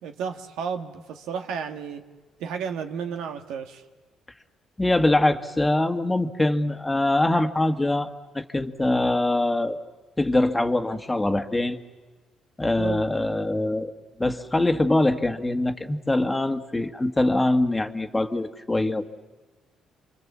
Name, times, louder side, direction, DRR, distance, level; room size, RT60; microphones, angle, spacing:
voice 1, 0.0-2.0 2.4-3.8 12.8-13.0, right 6 dB, 80° right, 5 dB, 1.6 m, -32 dB
voice 2, 4.8-9.8 10.2-11.8 12.6-13.9 14.2-19.1, left 2 dB, 15° left, 6 dB, 1.6 m, -23 dB
29.0 x 24.5 x 7.4 m, 1.3 s
supercardioid pair, 70°, 0 cm